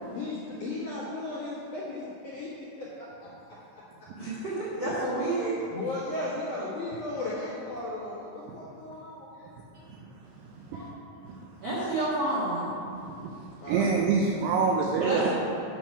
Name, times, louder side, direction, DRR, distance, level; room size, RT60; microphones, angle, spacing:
voice 1, 0.1-4.1 4.3-4.4 4.8-4.9 5.7-9.6 13.6-13.9, left 2 dB, 60° left, -8 dB, 2.1 m, -36 dB
voice 2, 4.1-5.5 10.7-10.8 11.6-12.7 15.0-15.3, right 2 dB, 60° right, -9 dB, 1.7 m, -29 dB
voice 3, 10.4-10.8 11.3-11.4 13.0-13.4 13.7-15.3, right 5 dB, 85° right, -1 dB, 2.4 m, -26 dB
9.4 x 6.6 x 5.8 m, 2.5 s
omnidirectional pair, 5.6 m